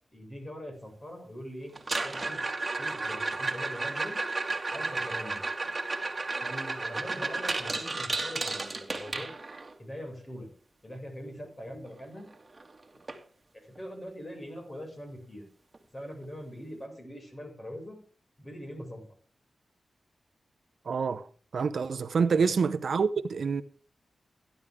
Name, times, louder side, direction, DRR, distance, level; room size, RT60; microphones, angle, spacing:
voice 1, 0.1-1.7 2.0-2.4 2.8-4.2 4.7-5.4 6.4-9.3 9.8-10.5 10.8-12.3 13.5-15.4 15.9-18.0 18.4-19.0 22.4-22.7, equal, 25° left, 6.4 m, -42 dB
sound 1, 1.8-9.7 12.0-12.1 12.3-12.7 13.1-13.2 13.8-13.9 15.7-15.8, right 3 dB, 30° right, 2.1 m, -33 dB
voice 2, 20.9-21.3 21.5-23.6, right 5 dB, 70° right, 0.7 m, -27 dB
15.5 x 11.5 x 3.7 m
wide cardioid pair, 85°, 0 cm